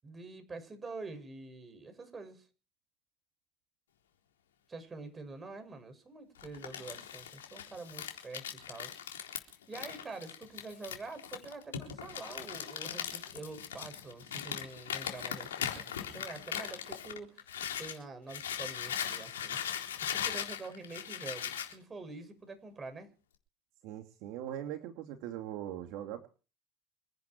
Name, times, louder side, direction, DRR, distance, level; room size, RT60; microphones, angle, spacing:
voice 1, 0.0-2.5 4.7-9.0 9.3-17.5 17.8-19.6 20.0-23.1, right 3 dB, 25° right, 6.8 m, -46 dB
Crumpling crinkling, 6.4-18.0 18.3-21.7, left 9 dB, 85° left, 3.9 m, -39 dB
voice 2, 23.8-26.3, right 11 dB, 65° right, 2.9 m, -41 dB
27.0 x 11.0 x 4.8 m
hypercardioid pair, 75°, 0 cm